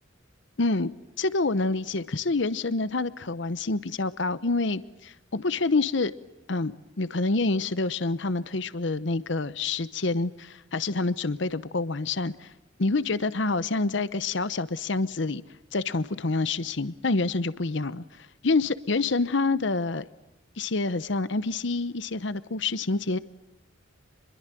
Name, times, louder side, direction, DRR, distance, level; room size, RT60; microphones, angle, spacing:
voice 1, 0.6-0.9 1.2-6.1 6.5-12.5 12.8-15.4 15.7-20.0 20.6-23.2, left 3 dB, 65° left, 16 dB, 0.9 m, -27 dB
27.5 x 22.5 x 9.1 m, 0.92 s
head